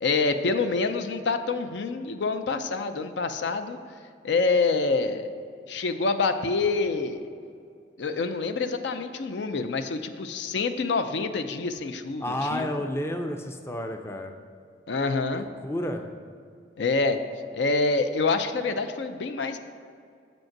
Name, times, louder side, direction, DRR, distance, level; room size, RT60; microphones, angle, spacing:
voice 1, 0.0-3.8 4.2-5.3 5.7-7.3 8.0-12.7 14.9-15.5 16.8-17.2 17.5-19.6, left 4 dB, 75° left, 8 dB, 0.5 m, -26 dB
voice 2, 12.2-14.3 15.6-16.0, left 1 dB, 15° left, 5 dB, 0.4 m, -30 dB
7.5 x 5.3 x 5.9 m, 2.3 s
head